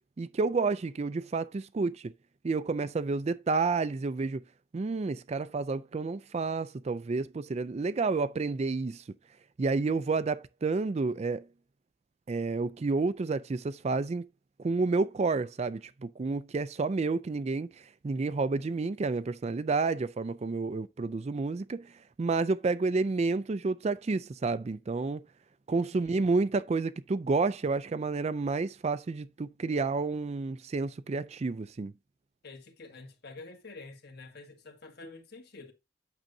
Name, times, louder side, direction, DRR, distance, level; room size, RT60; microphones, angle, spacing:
voice 1, 0.2-2.1 2.4-4.4 4.7-9.0 9.6-11.4 12.3-14.3 14.6-17.7 18.0-21.9 22.2-25.2 25.7-31.9, right 3 dB, 30° right, 0.3 m, -30 dB
voice 2, 25.8-26.2 32.4-35.7, left 3 dB, 50° left, 1.5 m, -48 dB
8.9 x 6.4 x 2.7 m
head